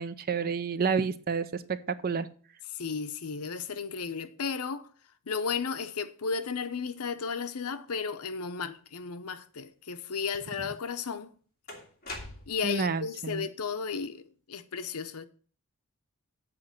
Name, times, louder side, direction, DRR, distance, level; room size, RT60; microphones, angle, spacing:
voice 1, 0.0-2.3 12.6-13.5, right 5 dB, 40° right, 0.5 m, -30 dB
voice 2, 2.7-4.9 5.3-11.3 12.5-14.2 14.5-15.2, left 5 dB, 80° left, 0.7 m, -34 dB
sound 1, 10.7-10.8 11.7-12.8, left 2 dB, 40° left, 2.4 m, -42 dB
7.7 x 5.2 x 7.5 m
head